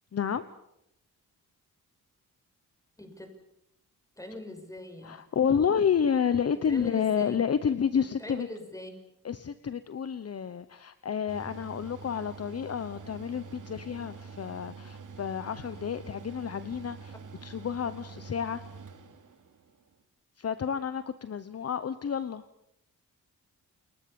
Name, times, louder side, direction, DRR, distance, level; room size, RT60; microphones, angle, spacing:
voice 1, 0.1-0.4 5.0-8.5 9.2-17.1 17.4-18.6 20.4-22.4, left 7 dB, 45° left, 13 dB, 1.0 m, -30 dB
voice 2, 3.0-3.3 4.2-5.2 6.7-7.4 8.2-9.0, left 1 dB, 10° left, 6 dB, 6.0 m, -41 dB
Mechanical fan, 11.3-19.7, right 5 dB, 60° right, 3.7 m, -46 dB
30.0 x 21.0 x 7.1 m, 0.79 s
cardioid pair, 105°, 34 cm